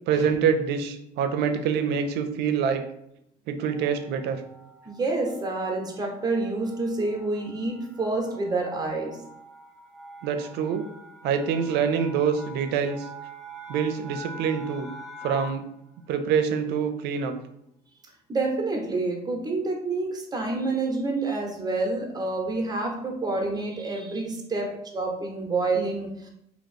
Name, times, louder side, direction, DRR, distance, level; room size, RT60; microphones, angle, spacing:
voice 1, 0.1-2.8 3.5-4.4 10.2-10.8 11.2-13.1 13.7-14.9 15.2-15.6 16.1-17.4, right 7 dB, 85° right, 8 dB, 0.5 m, -25 dB
sound 1, 3.7-15.8, right 1 dB, ahead, 0.5 m, -45 dB
voice 2, 4.8-9.2 18.3-26.3, right 3 dB, 25° right, 1 dB, 0.9 m, -28 dB
2.9 x 2.8 x 4.2 m, 0.77 s
cardioid pair, 110°, 17 cm